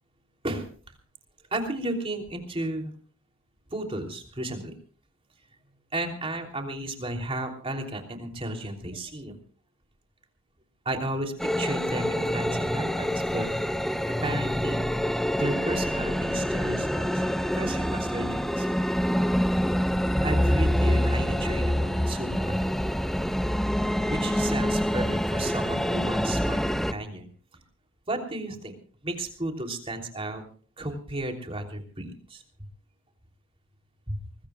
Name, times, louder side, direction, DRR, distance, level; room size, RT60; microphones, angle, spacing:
voice 1, 1.5-2.9 3.7-4.8 5.9-9.4 10.8-13.5 14.1-14.9 15.4-18.7 20.2-22.7 24.1-27.3 28.1-28.8 29.0-30.4 30.8-32.4 34.1-34.2, right 1 dB, 25° right, 3 dB, 3.1 m, -33 dB
sound 1, 11.4-26.9, equal, ahead, 0.6 m, -26 dB
24.0 x 21.0 x 2.3 m, 0.41 s
head